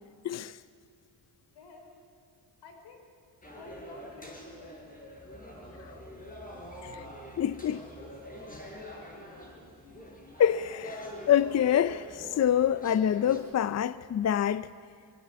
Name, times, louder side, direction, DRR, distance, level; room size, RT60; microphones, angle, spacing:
voice 1, 0.2-0.6 7.4-7.8 10.4-14.7, left 9 dB, 40° left, 0.5 m, -26 dB
voice 2, 1.4-2.1 2.6-3.1 3.4-7.0 7.7-8.1 8.9-9.7, left 3 dB, 90° left, 5.1 m, -53 dB
sound 1, 3.4-13.4, equal, 20° left, 6.8 m, -45 dB
23.5 x 22.5 x 8.5 m
cardioid pair, 80°, 41 cm